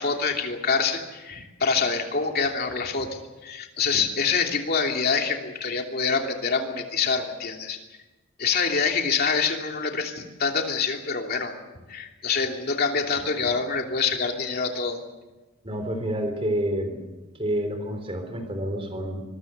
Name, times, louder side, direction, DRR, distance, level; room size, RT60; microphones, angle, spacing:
voice 1, 0.0-7.8 8.4-11.5 11.9-15.0, left 5 dB, 45° left, 3 dB, 3.0 m, -26 dB
voice 2, 15.6-17.0 17.4-19.2, right 1 dB, 25° right, 6 dB, 3.7 m, -28 dB
25.5 x 22.0 x 6.8 m, 1.1 s
head